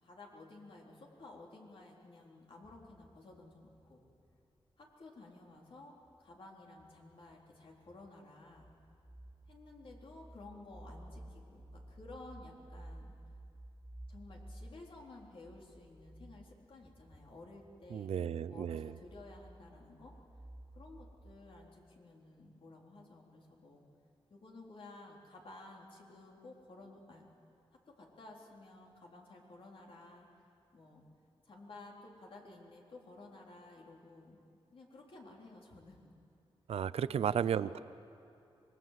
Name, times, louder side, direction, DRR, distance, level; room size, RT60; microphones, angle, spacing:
voice 1, 0.0-4.1 4.8-5.9 6.2-8.7 9.5-13.1 14.1-20.1 20.7-23.8 24.3-27.3 27.7-30.3 30.7-31.0 31.4-34.4 34.7-36.1 37.1-37.7, left 2 dB, 60° left, -1 dB, 3.9 m, -54 dB
sound 1, 2.6-4.4 5.7-6.4 6.7-21.4, right 1 dB, ahead, 3.0 m, -55 dB
voice 2, 17.9-18.9 36.7-37.8, right 8 dB, 85° right, 15 dB, 0.6 m, -33 dB
25.5 x 20.5 x 7.6 m, 2.6 s
cardioid pair, 85°, 10 cm